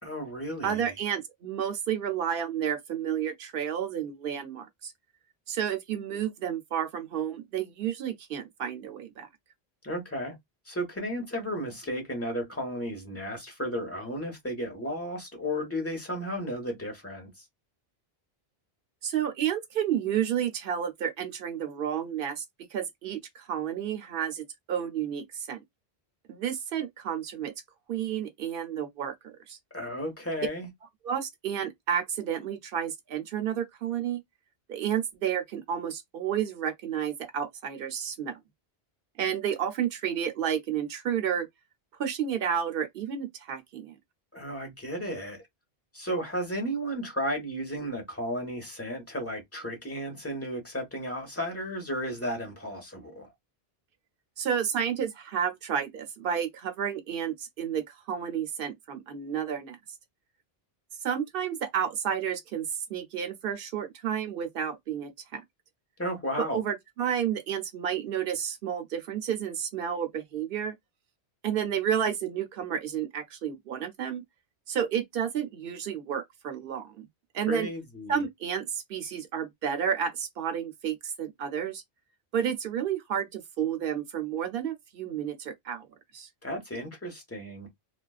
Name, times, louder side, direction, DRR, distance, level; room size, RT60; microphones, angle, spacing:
voice 1, 0.0-0.9 9.8-10.3 10.7-17.3 29.7-30.7 44.3-45.4 45.9-53.3 66.0-66.6 77.5-78.2 86.4-87.7, equal, 15° left, 1.0 m, -34 dB
voice 2, 0.6-4.9 5.5-9.3 19.0-22.4 22.7-25.6 26.3-27.5 27.9-29.6 31.0-34.2 34.7-38.4 39.2-41.5 42.0-44.0 54.4-59.8 61.0-65.4 66.4-70.7 71.4-74.2 74.7-77.1 77.3-77.7 78.1-81.8 82.3-85.9 86.1-86.3, right 8 dB, 65° right, 0.8 m, -31 dB
2.4 x 2.3 x 2.3 m
omnidirectional pair, 1.1 m